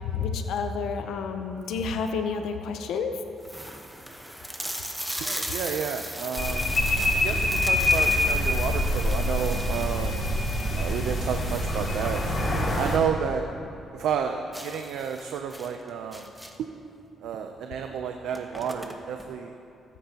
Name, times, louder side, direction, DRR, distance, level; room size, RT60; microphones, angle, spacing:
voice 1, 0.0-3.2, left 5 dB, 80° left, 6 dB, 0.7 m, -30 dB
sound 1, 1.6-2.0 2.7-2.8 3.0-3.1 3.4-13.0 13.3-13.4 13.8-13.9 14.5-16.8 17.7-17.8 18.1-19.3, equal, 5° right, 1.0 m, -38 dB
voice 2, 5.2-6.7 7.1-10.2 10.7-13.5 13.9-16.3 17.2-19.5, right 7 dB, 80° right, 5 dB, 0.5 m, -31 dB
sound 2, 6.4-13.0, left 1 dB, 40° left, 2.4 m, -25 dB
19.5 x 9.2 x 2.9 m, 2.7 s
cardioid pair, 90°, 0 cm